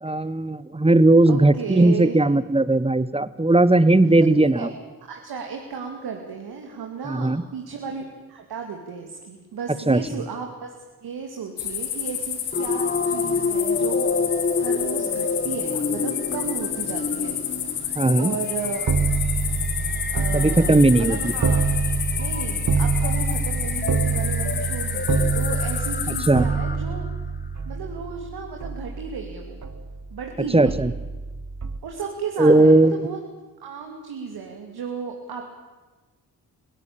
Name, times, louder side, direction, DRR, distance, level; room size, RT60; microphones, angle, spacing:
voice 1, 0.0-4.7 7.1-7.4 9.9-10.0 17.9-18.4 20.3-21.3 26.1-26.4 30.5-30.9 32.4-33.0, right 2 dB, 15° right, 17 dB, 1.2 m, -17 dB
voice 2, 1.3-2.2 4.4-4.7 5.0-10.7 11.0-14.1 14.5-17.4 17.6-18.9 20.1-21.7 22.2-27.1 27.7-29.6 30.1-30.8 31.8-33.2 33.6-35.4, right 5 dB, 75° right, 2 dB, 2.7 m, -34 dB
sound 1, 11.6-26.3, left 10 dB, 80° left, 2.1 m, -30 dB
sound 2, 12.5-27.1, left 4 dB, 25° left, 1.4 m, -30 dB
sound 3, 18.9-30.2 30.7-31.8, right 4 dB, 50° right, 1.8 m, -26 dB
23.5 x 16.5 x 8.7 m, 1.2 s
supercardioid pair, 45°, 38 cm